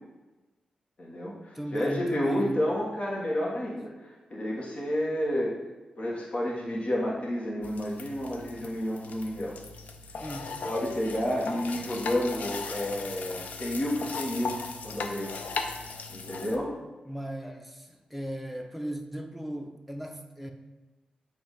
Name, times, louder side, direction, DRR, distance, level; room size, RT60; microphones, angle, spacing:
voice 1, 1.0-5.5 6.0-9.6 10.6-14.6 14.8-15.4 16.1-16.7 17.4-17.5, left 1 dB, 45° left, -5 dB, 1.4 m, -30 dB
voice 2, 1.5-2.6 10.2-10.6 17.1-20.5, equal, ahead, 4 dB, 0.7 m, -37 dB
sound 1, 7.6-16.6, left 4 dB, 75° left, 0.5 m, -38 dB
7.0 x 2.7 x 5.4 m, 1.2 s
cardioid pair, 60°, 3 cm